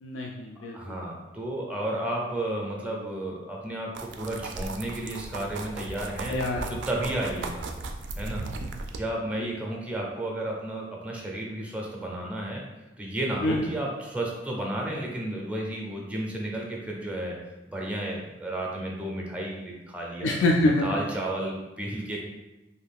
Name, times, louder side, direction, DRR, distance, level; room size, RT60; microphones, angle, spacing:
voice 1, 0.0-0.8 6.3-6.7 9.4-9.5 13.4-13.7 20.2-20.9, left 1 dB, 80° left, 0 dB, 0.3 m, -25 dB
voice 2, 0.7-6.4 6.7-7.6 8.2-8.5 8.9-12.6 13.0-17.4 17.7-20.4 20.8-22.2, right 1 dB, 5° right, -1 dB, 0.5 m, -32 dB
sound 1, 3.9-9.0, right 3 dB, 75° right, 0.3 m, -36 dB
2.6 x 2.3 x 3.4 m, 1.0 s
head